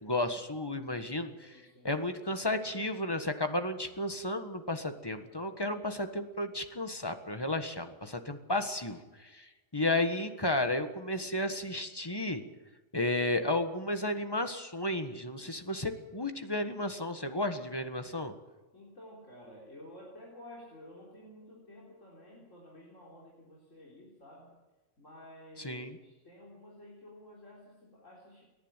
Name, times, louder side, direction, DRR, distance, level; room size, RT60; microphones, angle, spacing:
voice 1, 0.0-12.4 12.9-18.3 25.6-25.9, left 1 dB, 20° left, 7 dB, 1.6 m, -33 dB
voice 2, 1.4-1.9 18.7-24.5 25.0-28.4, left 1 dB, 90° left, -4 dB, 4.3 m, -52 dB
29.0 x 11.0 x 9.1 m, 1.2 s
omnidirectional pair, 1.3 m